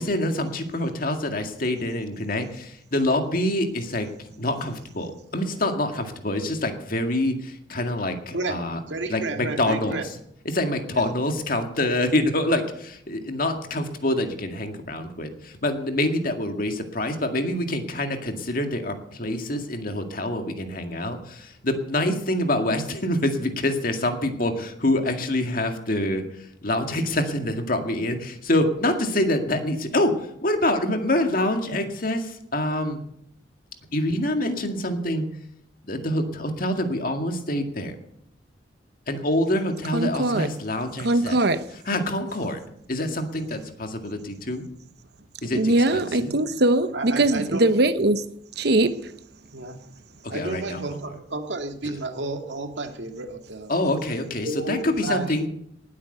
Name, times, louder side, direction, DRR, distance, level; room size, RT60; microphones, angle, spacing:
voice 1, 0.0-8.8 9.1-10.1 10.5-33.0 33.9-35.2 35.8-38.0 39.1-41.4 41.9-42.6 42.9-44.6 45.4-46.3 50.2-51.0 53.7-55.5, left 1 dB, 50° left, 2.0 m, -26 dB
voice 2, 8.9-10.1 10.9-11.1 46.0-46.4 46.9-47.7 49.5-49.8 50.3-53.7 54.4-55.4, right 2 dB, 80° right, 2.0 m, -31 dB
voice 3, 39.9-40.5 41.0-41.6 45.5-48.2 48.6-49.1, right 2 dB, 60° right, 0.9 m, -21 dB
19.0 x 8.6 x 6.7 m
head